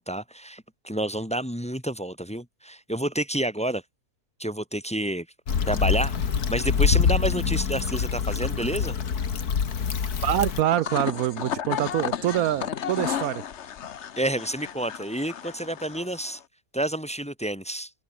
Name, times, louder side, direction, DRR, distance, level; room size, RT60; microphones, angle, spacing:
voice 1, 0.0-3.8 4.4-5.3 5.6-6.1 6.5-9.0 14.2-16.4 16.7-17.9, right 1 dB, 5° left, 1.4 m, -29 dB
Stream / Traffic noise roadway noise / Trickle dribble, 5.5-10.6, left 6 dB, 90° left, 2.2 m, -25 dB
voice 2, 10.2-13.4, right 12 dB, 75° right, 1.0 m, -25 dB
sound 1, 10.6-16.4, left 8 dB, 55° left, 1.1 m, -33 dB
omnidirectional pair, 1.6 m